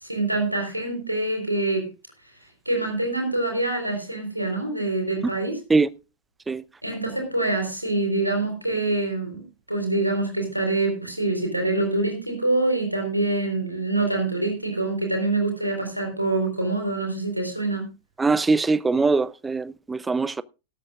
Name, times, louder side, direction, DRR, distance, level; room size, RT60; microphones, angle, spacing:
voice 1, 0.0-1.9 2.7-5.6 6.8-17.8, right 2 dB, 90° right, 4.2 m, -25 dB
voice 2, 18.2-20.4, right 3 dB, 10° right, 0.5 m, -22 dB
17.0 x 13.0 x 2.5 m
figure-of-eight pair, 90°, 0 cm